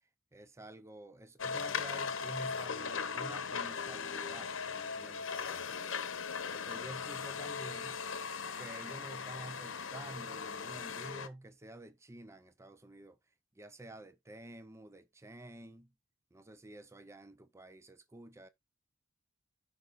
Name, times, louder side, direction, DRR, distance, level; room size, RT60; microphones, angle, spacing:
voice 1, 0.3-6.0 6.5-8.0 8.6-13.2 13.6-15.9 16.3-18.5, right 1 dB, 15° right, 0.5 m, -50 dB
sound 1, 1.4-11.3, left 6 dB, 70° left, 0.9 m, -39 dB
13.5 x 5.1 x 2.5 m
head